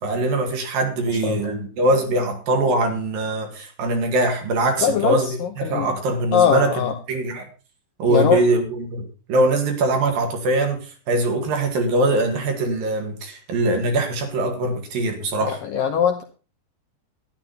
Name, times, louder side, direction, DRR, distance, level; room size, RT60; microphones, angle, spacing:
voice 1, 0.0-7.5 8.0-15.6, right 2 dB, 60° right, 4 dB, 3.5 m, -22 dB
voice 2, 1.2-1.6 4.8-5.9 6.3-6.9 8.1-8.4 15.4-16.2, left 8 dB, 75° left, 5 dB, 2.2 m, -21 dB
13.0 x 11.5 x 4.1 m, 0.35 s
omnidirectional pair, 5.0 m